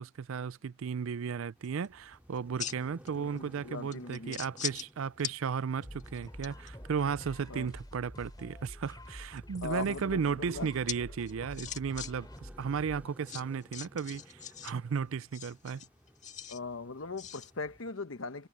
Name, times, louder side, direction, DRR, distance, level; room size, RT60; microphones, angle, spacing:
voice 1, 0.0-15.8, right 6 dB, 75° right, 0.4 m, -35 dB
sound 1, 1.6-1.9 2.4-3.1 3.4-3.5 3.9-4.9 5.2-5.4 5.8-6.7 8.8-9.4 10.9-11.0 11.3-12.1 12.4-12.5 13.3-14.7 15.2-16.6 17.2-17.5, left 8 dB, 35° left, 1.9 m, -40 dB
sound 2, 1.6-17.9, equal, 10° right, 3.3 m, -58 dB
voice 2, 3.2-4.4 7.5-7.7 9.6-10.7 16.5-18.5, left 3 dB, 70° left, 1.1 m, -40 dB
sound 3, 5.8-13.2, equal, 20° left, 3.2 m, -48 dB
head